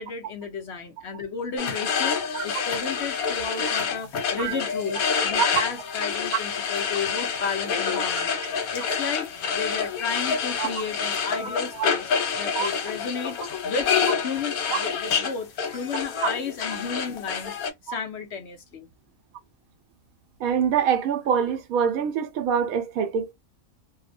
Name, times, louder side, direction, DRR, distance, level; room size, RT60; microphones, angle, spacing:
voice 1, 0.0-8.4 8.7-12.1 12.4-13.4 13.6-17.6 17.8-18.9, left 5 dB, 60° left, 0.8 m, -33 dB
sound 1, 1.6-17.7, left 6 dB, 90° left, 1.3 m, -27 dB
voice 2, 20.4-23.3, right 7 dB, 90° right, 1.1 m, -25 dB
2.7 x 2.0 x 2.5 m
omnidirectional pair, 1.5 m